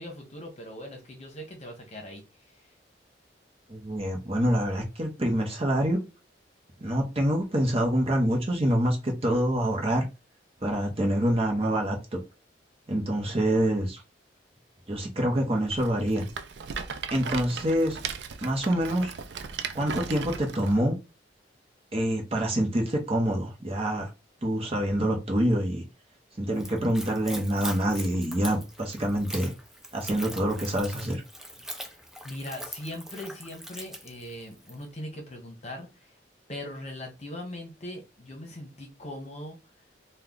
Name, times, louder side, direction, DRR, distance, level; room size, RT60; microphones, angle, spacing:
voice 1, 0.0-2.2 31.8-32.0 32.2-35.9 36.5-39.6, left 1 dB, 35° left, 1.0 m, -40 dB
voice 2, 3.7-6.0 6.8-10.0 10.6-12.2 12.9-14.0 14.9-16.2 17.1-18.0 18.4-19.1 19.7-20.9 21.9-24.1 24.4-25.8 26.4-29.5 29.9-31.2, equal, 30° right, 0.9 m, -26 dB
Rattle, 15.7-20.8, right 6 dB, 70° right, 0.4 m, -37 dB
Splash splatter / Trickle dribble, 26.5-34.9, equal, ahead, 0.4 m, -42 dB
3.1 x 2.3 x 3.7 m
head